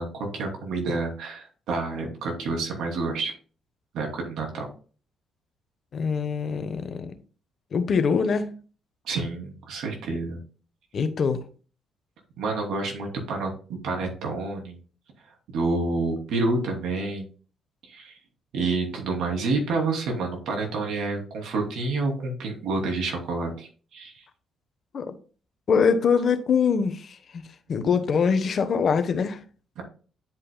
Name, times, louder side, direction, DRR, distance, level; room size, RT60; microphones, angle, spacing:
voice 1, 0.0-3.3 3.9-4.7 9.0-10.4 12.4-14.8 15.5-17.3 17.8-18.2 18.5-24.3 29.8-29.9, right 3 dB, 80° right, 2.7 m, -28 dB
voice 2, 5.9-7.1 7.7-8.6 10.9-11.4 24.9-25.1 25.7-29.4, left 6 dB, 50° left, 1.0 m, -24 dB
10.5 x 5.3 x 2.2 m
cardioid pair, 90°, 0 cm